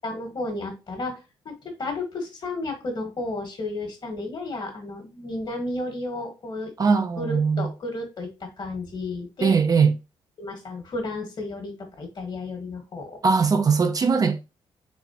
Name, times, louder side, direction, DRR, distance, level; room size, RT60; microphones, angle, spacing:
voice 1, 0.0-1.2 1.4-6.7 7.2-9.6 10.4-13.2, left 2 dB, 50° left, 1.6 m, -32 dB
voice 2, 6.8-7.7 9.4-9.9 13.2-14.4, right 5 dB, 35° right, 0.5 m, -20 dB
4.2 x 3.1 x 2.8 m
cardioid pair, 75°, 10 cm